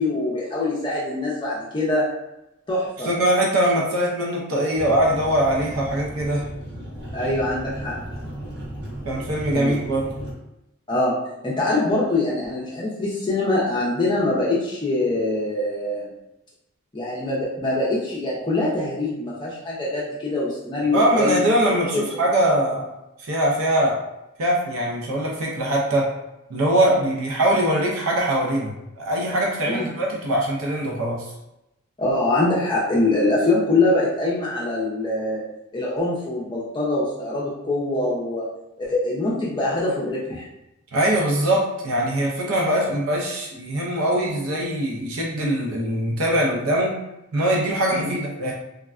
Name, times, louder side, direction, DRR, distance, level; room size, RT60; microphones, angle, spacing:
voice 1, 0.0-2.1 2.7-3.1 7.1-8.0 9.5-9.8 10.9-11.1 11.4-16.1 16.9-21.4 21.9-22.0 29.7-29.9 32.0-35.4 35.7-38.5 38.8-40.4 47.9-48.1, left 2 dB, 20° left, -6 dB, 0.5 m, -23 dB
voice 2, 3.0-6.4 9.0-10.1 20.9-22.9 23.2-24.0 24.4-26.1 26.5-31.3 40.9-47.0 47.3-48.5, right 1 dB, 70° right, -1 dB, 0.5 m, -22 dB
sound 1, 4.7-10.3, right 1 dB, 50° right, 1.0 m, -35 dB
3.5 x 2.1 x 2.3 m, 0.90 s
head